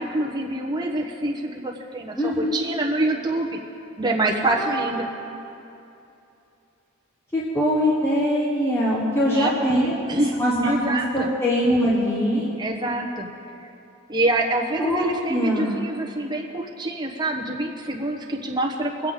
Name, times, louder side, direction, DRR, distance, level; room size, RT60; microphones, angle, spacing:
voice 1, 0.0-3.6 4.0-5.1 9.2-9.5 9.8-10.4 10.6-11.3 12.6-13.3 14.1-19.1, right 2 dB, 20° right, -1 dB, 1.3 m, -26 dB
voice 2, 2.2-2.5 4.4-5.0 7.3-9.9 10.4-12.5 14.8-15.8, equal, 15° left, -6 dB, 1.3 m, -22 dB
23.0 x 8.2 x 3.9 m, 2.7 s
head